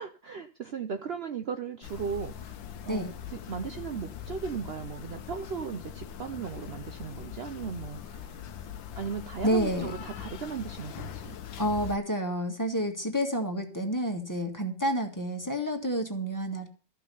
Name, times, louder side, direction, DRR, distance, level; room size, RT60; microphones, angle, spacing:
voice 1, 0.0-2.5 2.8-8.4 9.0-11.4, right 6 dB, 65° right, 7 dB, 0.6 m, -37 dB
sound 1, 1.8-12.0, left 9 dB, 90° left, 1.6 m, -42 dB
voice 2, 9.4-9.9 11.6-16.7, equal, 10° left, 3 dB, 1.7 m, -29 dB
13.5 x 5.8 x 6.9 m, 0.37 s
omnidirectional pair, 2.0 m